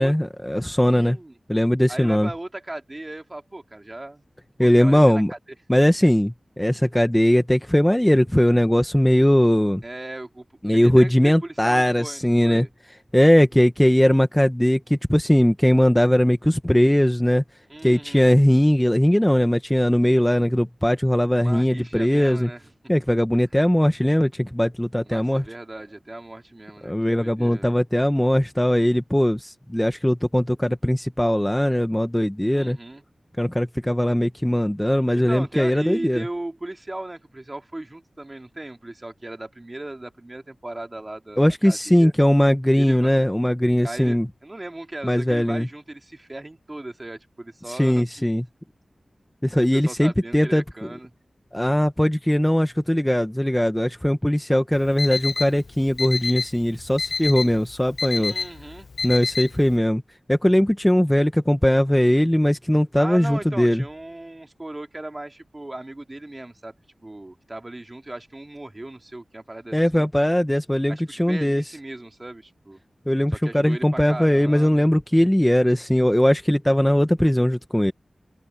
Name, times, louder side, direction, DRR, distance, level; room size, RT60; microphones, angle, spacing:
voice 1, 0.0-1.2 1.5-2.3 4.6-5.3 5.7-9.8 10.6-12.7 13.1-17.4 17.8-22.5 22.9-25.4 26.8-32.8 33.4-36.2 41.4-44.3 45.0-45.7 47.7-48.4 49.4-50.6 51.5-58.3 59.0-60.0 60.3-63.8 69.7-71.6 73.1-77.9, equal, 10° left, 1.2 m, -19 dB
voice 2, 0.9-1.3 1.9-4.2 4.6-5.4 9.8-10.4 10.7-12.7 17.7-18.3 21.4-22.7 25.0-27.8 32.4-33.0 35.1-42.1 42.8-43.1 43.8-48.2 49.5-51.1 58.2-58.9 63.0-66.7 67.0-70.1 70.9-72.8 73.3-74.9, right 2 dB, 25° right, 2.7 m, -37 dB
Alarm, 54.7-59.8, left 4 dB, 75° left, 0.3 m, -29 dB
wide cardioid pair, 80°, 0 cm